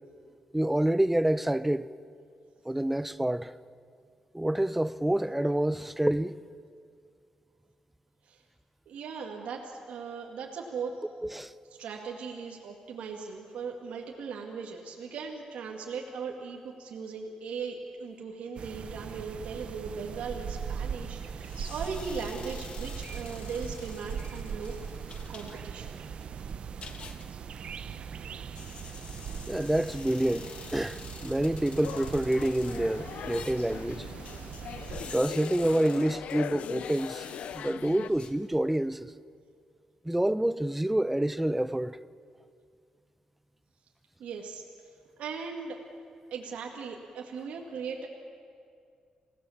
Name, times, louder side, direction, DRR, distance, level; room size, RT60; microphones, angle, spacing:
voice 1, 0.5-1.9 2.7-3.5 4.3-6.4 11.2-11.5 29.5-34.1 35.1-37.3 37.5-39.1 40.0-42.0, right 1 dB, 5° right, 0.5 m, -27 dB
voice 2, 8.9-10.9 11.8-24.8 25.3-26.0 44.2-44.6 45.2-45.8 46.3-48.1, right 5 dB, 85° right, 2.1 m, -38 dB
sound 1, 18.6-35.2, right 7 dB, 55° right, 0.8 m, -40 dB
sound 2, 21.4-38.9, left 5 dB, 55° left, 1.5 m, -50 dB
sound 3, 31.8-38.1, left 9 dB, 80° left, 0.5 m, -40 dB
27.5 x 17.5 x 7.3 m
wide cardioid pair, 135°, 2 cm